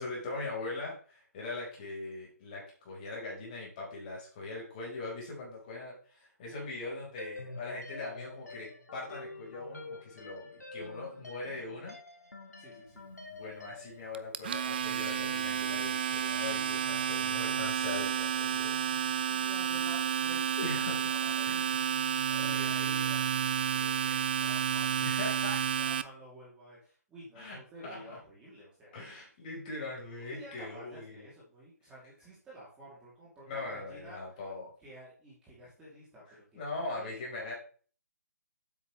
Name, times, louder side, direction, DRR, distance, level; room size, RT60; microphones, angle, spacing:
voice 1, 0.0-12.0 13.3-18.8 20.6-21.0 21.4-21.8 22.3-22.8 25.0-25.6 27.3-28.2 28.9-31.3 33.5-34.7 36.3-37.5, left 2 dB, 30° left, -3 dB, 4.6 m, -41 dB
sound 1, 7.2-14.0, left 3 dB, 70° left, 2.4 m, -47 dB
voice 2, 12.6-13.1 19.3-20.8 21.0-21.8 22.4-25.1 25.8-29.1 30.3-34.4 34.8-37.1 37.4-37.5, equal, 10° right, -7 dB, 3.0 m, -51 dB
Domestic sounds home sounds, 14.1-26.0, right 8 dB, 35° right, 0.5 m, -31 dB
8.7 x 8.3 x 3.3 m, 0.42 s
figure-of-eight pair, 140°, 9 cm